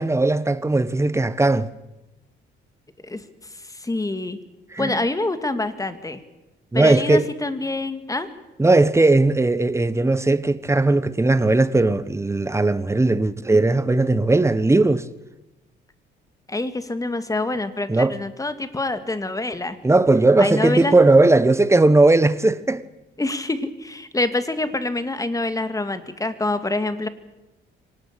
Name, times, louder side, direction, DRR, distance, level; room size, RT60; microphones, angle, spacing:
voice 1, 0.0-1.7 4.7-5.0 6.7-7.3 8.6-15.1 17.9-18.2 19.8-22.8, right 2 dB, 15° right, 1.2 m, -18 dB
voice 2, 3.0-4.4 4.8-6.2 6.7-8.3 16.5-19.8 20.4-21.0 23.2-27.1, left 2 dB, 15° left, 2.3 m, -26 dB
25.0 x 19.0 x 8.4 m
cardioid pair, 90°, 20 cm